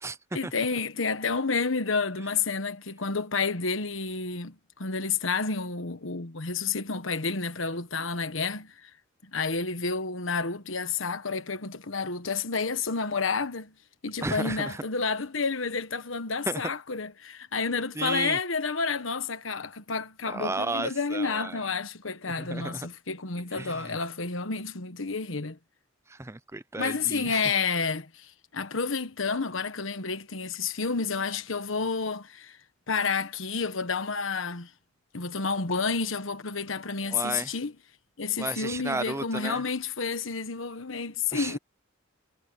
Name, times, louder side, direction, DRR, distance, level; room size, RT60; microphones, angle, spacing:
voice 1, 0.3-8.9 9.2-13.7 14.0-25.6 26.8-32.6 32.9-34.7 35.1-37.7 38.2-41.6, left 4 dB, 70° left, 1.4 m, -30 dB
voice 2, 14.2-14.8 16.5-16.6 17.9-18.4 20.2-21.6 22.4-22.9 23.5-24.0 26.1-27.4 37.0-37.5 38.4-39.6 41.3-41.6, right 2 dB, 15° right, 0.5 m, -33 dB
head